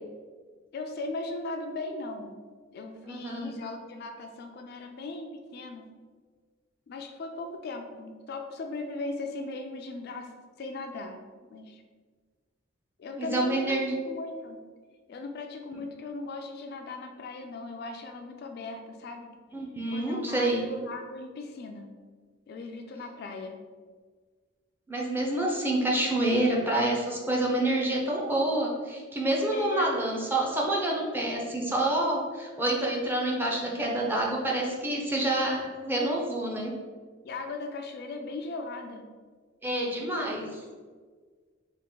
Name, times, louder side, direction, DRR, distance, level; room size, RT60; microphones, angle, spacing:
voice 1, 0.7-2.4 2.7-5.9 6.9-10.3 10.6-11.2 11.5-11.8 13.0-14.6 15.1-19.3 19.9-21.9 22.5-23.6 29.5-30.0 37.2-39.1, left 3 dB, 50° left, 4 dB, 0.3 m, -38 dB
voice 2, 3.1-3.5 13.1-13.9 19.5-20.6 24.9-36.7 39.6-40.6, right 1 dB, 10° right, -2 dB, 0.5 m, -28 dB
3.5 x 2.5 x 3.7 m, 1.5 s
head